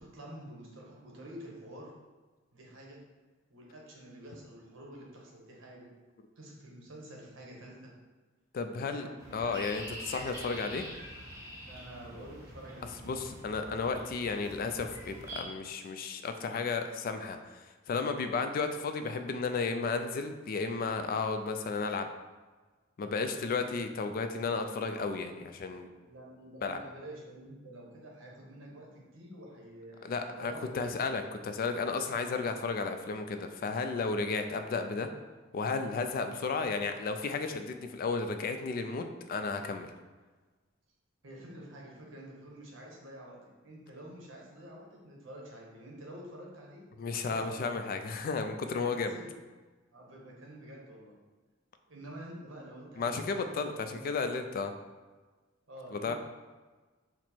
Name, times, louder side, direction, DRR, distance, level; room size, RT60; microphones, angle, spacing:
voice 1, 0.0-1.9 2.5-3.0 3.5-5.9 6.4-7.9 8.7-9.3 11.7-13.0 23.7-24.0 26.0-31.0 36.3-36.5 41.2-46.8 47.1-47.6 49.1-49.4 49.9-51.2 51.9-54.3 55.7-56.1, right 1 dB, 80° right, -2 dB, 1.0 m, -48 dB
voice 2, 8.5-9.1 9.3-10.9 13.0-22.1 23.0-25.9 26.6-26.8 30.0-35.1 35.5-39.9 47.0-49.2 53.0-54.7 55.9-56.1, left 4 dB, 50° left, 7 dB, 0.3 m, -33 dB
sound 1, 9.2-15.4, right 1 dB, 15° right, 0.9 m, -45 dB
4.4 x 2.0 x 4.2 m, 1.3 s
head